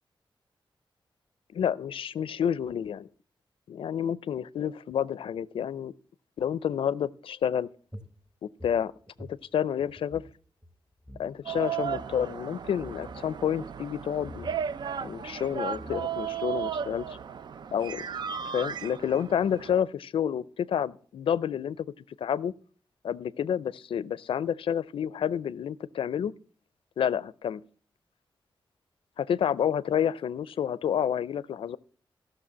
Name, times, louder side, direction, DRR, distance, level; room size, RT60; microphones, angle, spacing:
voice 1, 1.5-3.1 3.7-5.9 6.4-7.7 8.4-8.9 9.2-10.2 11.2-14.5 15.0-17.0 17.7-18.1 18.4-21.9 22.2-22.5 23.0-26.3 27.0-27.6 29.2-31.8, left 9 dB, 80° left, 0.5 m, -29 dB
sound 1, 7.9-10.4 10.6-10.7 11.0-11.3 11.9-12.3 12.7-13.2 14.2-14.6 15.4-15.5 15.7-16.3, left 1 dB, 10° right, 1.1 m, -46 dB
sound 2, 11.5-19.8, right 8 dB, 55° right, 0.5 m, -35 dB
15.5 x 6.4 x 7.3 m
wide cardioid pair, 160°, 9 cm